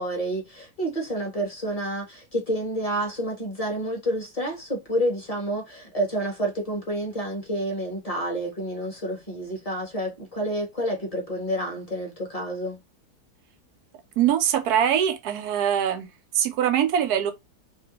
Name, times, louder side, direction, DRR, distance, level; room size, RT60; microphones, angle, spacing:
voice 1, 0.0-12.8, right 1 dB, 25° left, 1.5 m, -29 dB
voice 2, 14.2-16.1 16.3-17.3, right 9 dB, 80° right, 1.2 m, -22 dB
3.3 x 3.1 x 3.1 m
omnidirectional pair, 1.7 m